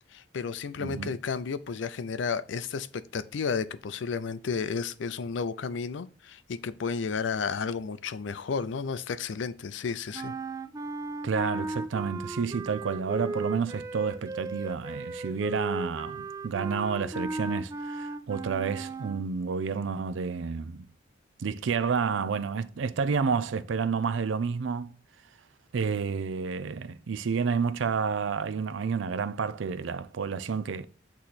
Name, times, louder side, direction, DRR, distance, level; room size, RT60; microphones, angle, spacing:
voice 1, 0.1-10.3, left 5 dB, 80° left, 0.4 m, -32 dB
voice 2, 0.8-1.1 11.2-20.9 21.4-24.9 25.7-30.9, right 5 dB, 85° right, 0.4 m, -30 dB
sound 1, 10.1-19.3, right 2 dB, 15° right, 0.3 m, -36 dB
8.4 x 3.0 x 4.0 m
head